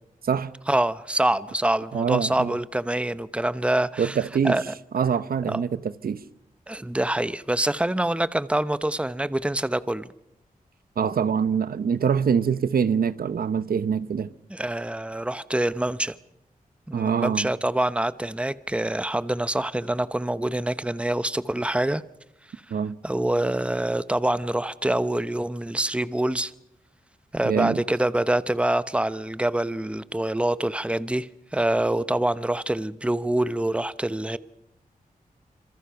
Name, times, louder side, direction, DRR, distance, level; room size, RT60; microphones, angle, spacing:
voice 1, 0.7-4.2 4.4-4.7 5.5-5.6 6.7-10.1 14.5-16.2 16.9-22.0 23.0-26.5 27.3-34.4, right 1 dB, 10° right, 0.8 m, -25 dB
voice 2, 1.9-2.6 4.0-4.6 4.9-6.2 11.0-14.3 16.9-17.5 22.7-23.0 27.4-27.8, right 7 dB, 85° right, 0.8 m, -24 dB
27.0 x 26.5 x 5.8 m
wide cardioid pair, 80°, 15 cm